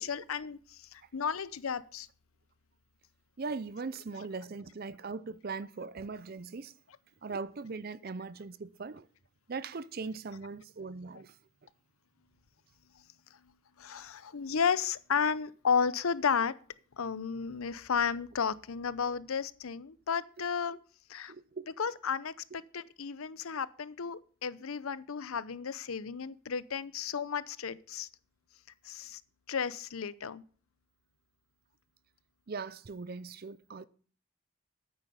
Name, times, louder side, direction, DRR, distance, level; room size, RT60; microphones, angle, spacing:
voice 1, 0.0-2.1 13.8-16.6 17.0-20.8 21.1-21.3 21.8-28.1 28.8-29.2 29.5-30.4, left 6 dB, 85° left, 0.7 m, -33 dB
voice 2, 3.4-6.7 7.2-9.1 9.5-11.4 21.3-21.7 32.5-33.9, right 4 dB, 45° right, 0.5 m, -40 dB
9.4 x 8.8 x 5.6 m
head